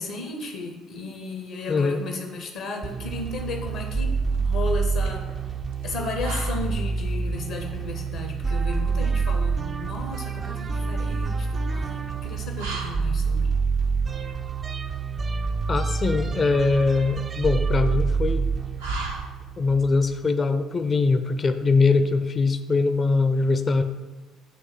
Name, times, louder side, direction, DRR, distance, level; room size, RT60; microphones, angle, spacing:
voice 1, 0.0-5.2 5.8-13.5, left 3 dB, 70° left, 3 dB, 0.7 m, -34 dB
voice 2, 1.7-2.0 15.7-18.5 19.6-23.8, left 3 dB, 35° left, 9 dB, 0.5 m, -22 dB
sound 1, 2.8-20.1, right 4 dB, 35° right, 0.4 m, -27 dB
sound 2, 2.8-19.8, right 3 dB, 75° right, 0.7 m, -41 dB
7.6 x 3.1 x 6.2 m, 1.2 s
figure-of-eight pair, 50°, 0 cm